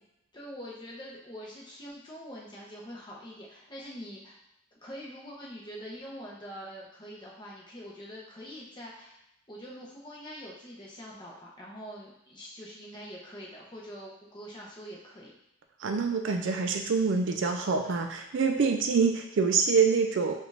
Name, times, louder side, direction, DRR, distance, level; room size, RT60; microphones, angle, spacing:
voice 1, 0.3-4.4 4.8-9.2 9.5-15.3 17.8-18.0, equal, 20° left, -4 dB, 0.8 m, -44 dB
voice 2, 15.8-20.3, right 5 dB, 55° right, 5 dB, 0.4 m, -26 dB
4.9 x 2.5 x 3.3 m, 0.82 s
head